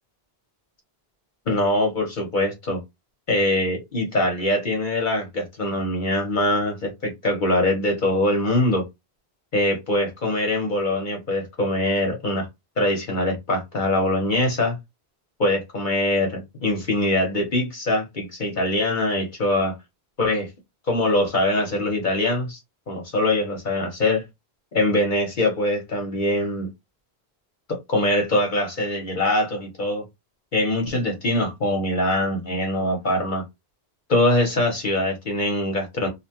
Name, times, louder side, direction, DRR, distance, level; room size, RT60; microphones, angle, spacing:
voice 1, 1.5-2.8 3.3-8.8 9.5-12.5 12.8-14.8 15.4-19.8 20.2-20.5 20.9-22.6 22.9-24.2 24.7-26.7 27.7-30.0 30.5-33.4 34.1-36.1, left 1 dB, 55° left, 0.9 m, -23 dB
2.7 x 2.2 x 2.8 m
omnidirectional pair, 1.0 m